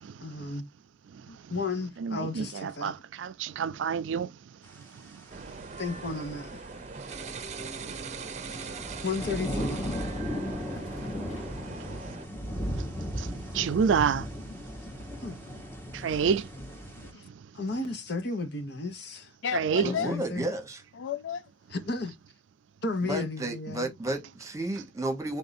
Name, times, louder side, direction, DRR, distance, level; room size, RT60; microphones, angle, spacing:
voice 1, 0.2-0.6 1.5-2.9 5.8-6.7 9.0-10.0 15.2-15.4 17.1-17.2 17.5-19.3 19.8-20.5 21.7-22.1 22.8-23.9, left 3 dB, 60° left, 1.1 m, -33 dB
voice 2, 2.0-4.3 5.4-5.5 12.8-12.9 13.2-14.3 15.9-16.5 19.5-19.9, right 6 dB, 80° right, 0.4 m, -28 dB
sound 1, 5.3-12.3, right 4 dB, 40° right, 0.6 m, -41 dB
sound 2, 5.7-5.9 6.2-17.1, equal, 10° left, 1.0 m, -37 dB
voice 3, 10.7-11.4 14.5-14.6 17.0-17.2 19.4-20.2 21.0-21.5, left 7 dB, 80° left, 0.3 m, -35 dB
voice 4, 19.8-20.8 23.0-25.4, right 2 dB, 15° right, 1.1 m, -32 dB
3.7 x 2.6 x 4.1 m
head